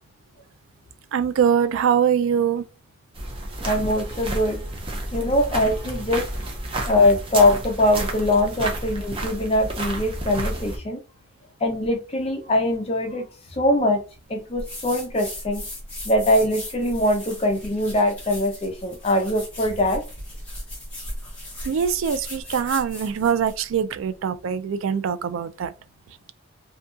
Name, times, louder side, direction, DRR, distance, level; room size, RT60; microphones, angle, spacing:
voice 1, 1.1-2.7 21.6-25.7, right 7 dB, 85° right, 0.3 m, -23 dB
sound 1, 3.1-10.8, right 1 dB, 25° right, 0.5 m, -31 dB
voice 2, 3.6-4.6 5.1-6.3 6.8-11.0 11.6-13.2 13.5-14.0 14.3-15.6 16.1-20.0, left 1 dB, 30° left, 0.5 m, -22 dB
sound 2, 14.6-23.6, left 1 dB, 5° left, 1.1 m, -37 dB
2.7 x 2.6 x 2.3 m
head